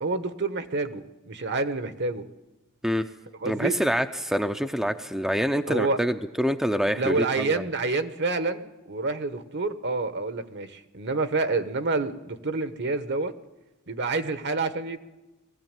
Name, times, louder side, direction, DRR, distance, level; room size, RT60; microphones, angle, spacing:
voice 1, 0.0-2.2 3.4-3.8 5.7-6.0 6.9-13.3 13.9-15.0, right 3 dB, 55° right, 10 dB, 1.2 m, -28 dB
voice 2, 3.5-7.6, equal, ahead, 6 dB, 0.6 m, -26 dB
20.5 x 16.0 x 9.1 m, 1.1 s
head